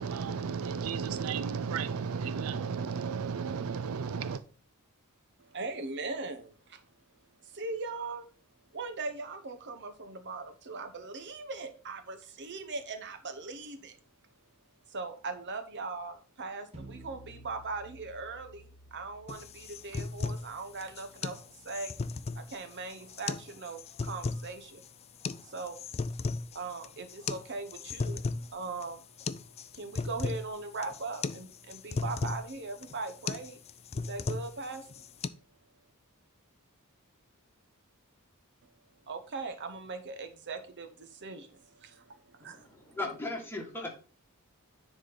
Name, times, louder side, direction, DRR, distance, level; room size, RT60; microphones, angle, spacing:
voice 1, 0.0-4.4, right 6 dB, 70° right, 0.4 m, -33 dB
voice 2, 5.4-6.8 7.4-8.3 8.7-14.0 14.9-22.0 22.3-24.8 25.4-25.8 26.5-28.2 28.5-29.1 29.7-33.6 33.9-35.0 39.1-42.7, right 3 dB, 55° right, 0.9 m, -40 dB
sound 1, 16.7-22.1, right 1 dB, 30° right, 1.4 m, -54 dB
sound 2, 19.3-35.3, left 4 dB, 30° left, 0.3 m, -37 dB
voice 3, 42.4-43.9, left 2 dB, 10° left, 1.8 m, -37 dB
9.8 x 4.2 x 3.8 m
head